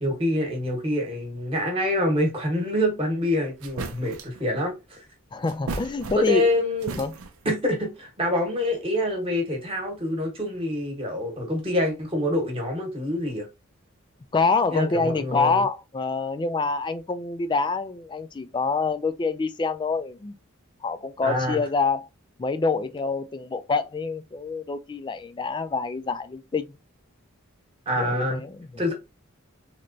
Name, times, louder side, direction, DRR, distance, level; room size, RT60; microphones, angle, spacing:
voice 1, 0.0-5.0 6.1-7.0 7.4-13.5 14.7-15.6 21.2-21.6 27.9-28.4 28.8-28.9, left 1 dB, 25° right, 1.1 m, -26 dB
sound 1, 3.6-4.4 5.4-6.5 6.8-7.5, right 3 dB, 85° right, 0.6 m, -36 dB
voice 2, 5.3-6.5 7.0-7.1 14.3-20.3 20.8-22.1 22.4-26.8 28.0-28.7, left 4 dB, 20° left, 0.3 m, -26 dB
3.3 x 2.9 x 2.6 m
head